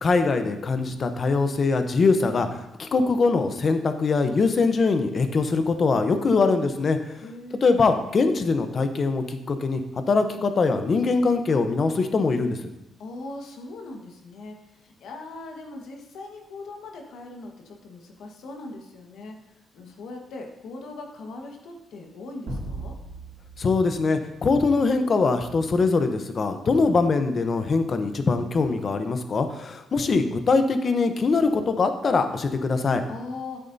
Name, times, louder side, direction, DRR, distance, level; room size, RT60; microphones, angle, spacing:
voice 1, 0.0-7.1 7.6-9.8 10.1-12.6 23.6-33.0, left 4 dB, 40° left, 8 dB, 0.8 m, -22 dB
voice 2, 7.2-7.7 13.0-23.0 33.1-33.6, left 2 dB, 75° left, 2 dB, 1.4 m, -40 dB
sound 1, 22.5-25.0, right 2 dB, 85° right, 2.6 m, -38 dB
10.0 x 8.3 x 2.7 m, 0.90 s
cardioid pair, 115°, 0 cm